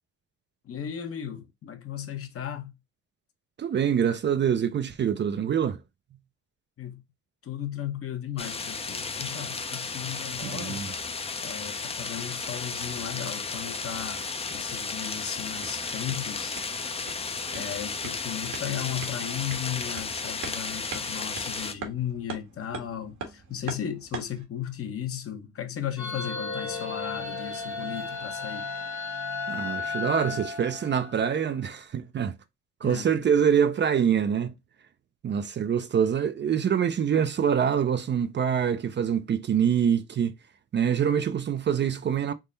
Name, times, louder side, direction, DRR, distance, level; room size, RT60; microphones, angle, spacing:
voice 1, 0.6-2.7 6.8-7.0 7.4-10.9 11.4-17.1 17.5-28.7 30.3-30.4 32.8-33.5, left 9 dB, 50° left, 0.9 m, -36 dB
voice 2, 3.6-5.8 10.4-10.9 29.5-32.3 32.8-34.5 35.2-40.3 40.7-42.3, right 8 dB, 40° right, 0.4 m, -25 dB
sound 1, 8.4-21.7, left 4 dB, 20° left, 0.5 m, -34 dB
sound 2, 15.4-24.4, right 5 dB, 75° right, 1.4 m, -43 dB
sound 3, 26.0-31.4, left 4 dB, 75° left, 1.2 m, -34 dB
3.7 x 2.1 x 3.8 m
cardioid pair, 90°, 30 cm